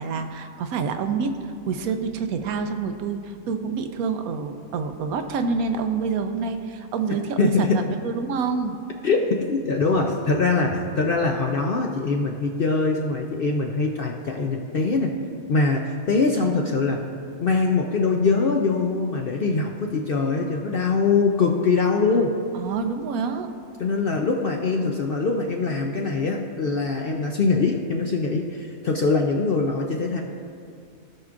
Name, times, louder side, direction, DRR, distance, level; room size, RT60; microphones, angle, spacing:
voice 1, 0.0-8.8 22.5-23.5, right 5 dB, 80° right, 7 dB, 1.1 m, -27 dB
voice 2, 7.4-7.8 9.0-9.2 9.5-15.1 15.5-17.1 17.4-22.3 23.8-30.2, left 4 dB, 60° left, 1 dB, 0.6 m, -23 dB
17.5 x 6.0 x 2.5 m, 2.4 s
omnidirectional pair, 1.5 m